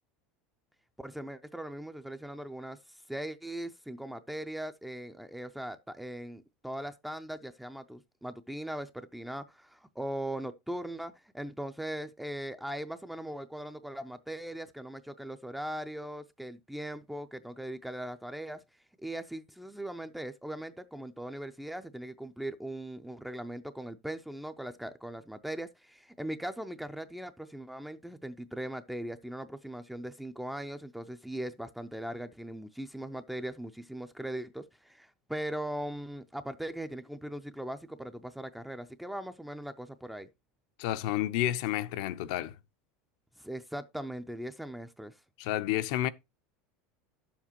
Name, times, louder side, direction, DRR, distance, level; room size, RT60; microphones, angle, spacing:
voice 1, 1.0-18.6 19.0-40.3 43.4-45.2, right 1 dB, 5° right, 0.4 m, -39 dB
voice 2, 40.8-42.6 45.4-46.1, left 13 dB, 65° left, 0.6 m, -30 dB
10.5 x 7.2 x 2.9 m
supercardioid pair, 150°, 4 cm